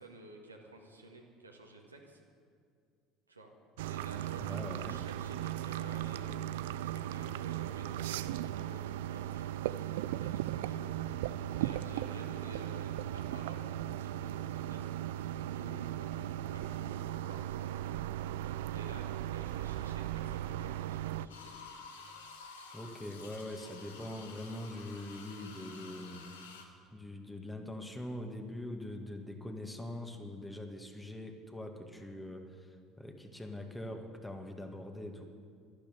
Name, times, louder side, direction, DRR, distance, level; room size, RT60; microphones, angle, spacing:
voice 1, 0.0-2.2 3.3-3.5 3.9-17.8 18.7-21.5, right 2 dB, 85° right, 1 dB, 1.7 m, -52 dB
sound 1, 3.8-21.3, right 12 dB, 65° right, 0.4 m, -37 dB
voice 2, 4.4-5.0 22.7-26.3 26.9-35.3, left 1 dB, 10° left, 4 dB, 2.0 m, -43 dB
sound 2, 21.3-26.7, left 4 dB, 75° left, 1.6 m, -51 dB
12.5 x 12.0 x 9.4 m, 2.2 s
figure-of-eight pair, 65°, 0 cm